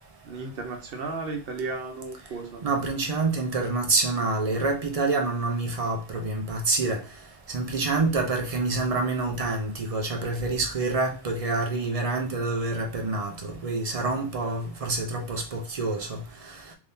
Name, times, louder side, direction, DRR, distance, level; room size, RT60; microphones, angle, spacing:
voice 1, 0.2-2.6, right 3 dB, 65° right, 0.9 m, -34 dB
voice 2, 2.6-7.0 7.5-16.2, right 3 dB, 45° right, 0.6 m, -27 dB
3.5 x 2.8 x 2.6 m
omnidirectional pair, 1.1 m